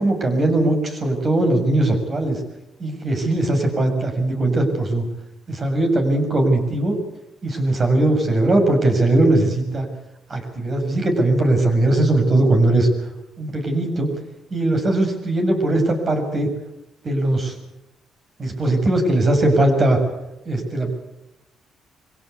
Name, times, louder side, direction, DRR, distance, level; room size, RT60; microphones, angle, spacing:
voice 1, 0.0-2.4 2.8-5.1 5.5-7.0 7.4-9.9 10.3-12.9 13.4-14.1 14.5-16.5 17.0-17.5 18.4-20.0 20.5-20.9, right 2 dB, 40° right, 4 dB, 6.9 m, -19 dB
24.5 x 17.0 x 8.4 m, 0.93 s
cardioid pair, 90°, 0 cm